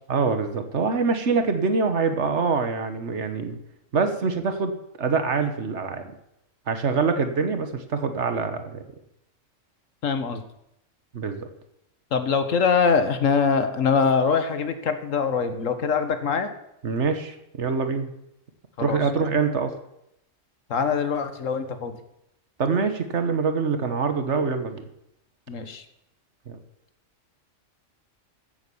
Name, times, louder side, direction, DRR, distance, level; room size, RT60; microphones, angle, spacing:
voice 1, 0.1-3.6 3.9-6.0 6.7-8.8 11.1-11.5 16.8-18.1 18.8-19.7 22.6-24.8 26.5-26.6, right 5 dB, 65° right, 8 dB, 1.5 m, -25 dB
voice 2, 10.0-10.4 12.1-16.5 18.8-19.0 20.7-21.9 25.5-25.8, left 5 dB, 80° left, 9 dB, 1.6 m, -23 dB
14.5 x 8.0 x 7.1 m, 0.81 s
omnidirectional pair, 1.3 m